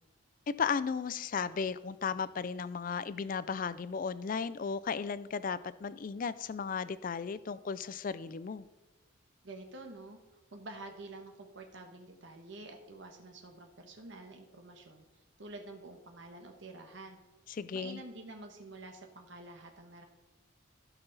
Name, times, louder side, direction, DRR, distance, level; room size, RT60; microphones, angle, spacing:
voice 1, 0.5-8.6 17.5-18.0, left 6 dB, 40° left, 16 dB, 0.3 m, -35 dB
voice 2, 9.4-10.2 10.5-15.0 15.4-17.2 17.7-20.1, right 2 dB, 60° right, 4 dB, 1.2 m, -48 dB
15.5 x 5.8 x 4.0 m, 1.1 s
head